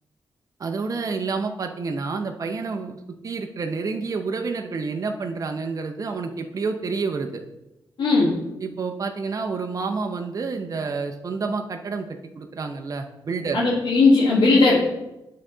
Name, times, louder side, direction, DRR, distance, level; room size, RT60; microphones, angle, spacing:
voice 1, 0.6-7.4 8.6-12.1 12.4-13.6, right 4 dB, 45° right, 4 dB, 0.6 m, -29 dB
voice 2, 8.0-8.3 13.5-14.8, left 3 dB, 75° left, -8 dB, 1.6 m, -17 dB
8.5 x 3.8 x 3.9 m, 0.95 s
cardioid pair, 65°, 8 cm